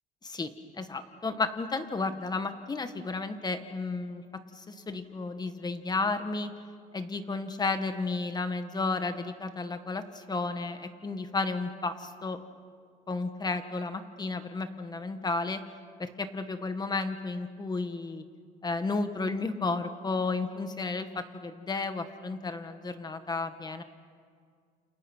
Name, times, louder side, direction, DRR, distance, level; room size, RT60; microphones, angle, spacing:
voice 1, 0.2-4.2 4.5-6.5 6.9-12.4 13.1-15.6 16.0-18.2 18.6-23.8, left 3 dB, 25° left, 8 dB, 1.9 m, -33 dB
29.5 x 29.0 x 6.4 m, 2.1 s
cardioid pair, 110°, 17 cm